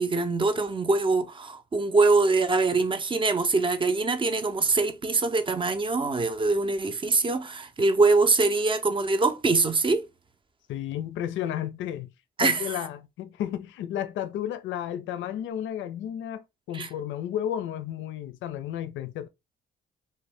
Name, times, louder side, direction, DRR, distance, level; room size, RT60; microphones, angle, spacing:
voice 1, 0.0-10.0 12.4-12.7 16.7-16.9, right 3 dB, 25° right, 0.5 m, -23 dB
voice 2, 10.7-12.1 12.4-19.3, left 10 dB, 75° left, 0.4 m, -32 dB
2.6 x 2.2 x 3.2 m
cardioid pair, 90°, 20 cm